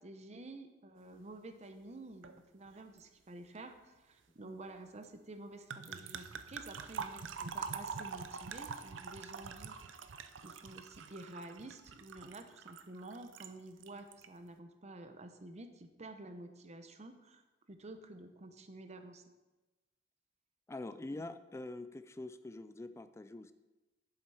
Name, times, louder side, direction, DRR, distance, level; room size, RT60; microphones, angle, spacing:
voice 1, 0.0-10.0 10.4-17.4 17.7-19.2 21.1-21.3, right 2 dB, 35° right, 8 dB, 0.7 m, -50 dB
sound 1, 2.2-2.4 2.7-3.0 5.7-13.5 13.8-14.3, right 6 dB, 75° right, 0.5 m, -45 dB
voice 2, 20.7-23.5, left 2 dB, 15° left, 11 dB, 0.3 m, -45 dB
7.5 x 7.5 x 4.8 m, 1.1 s
head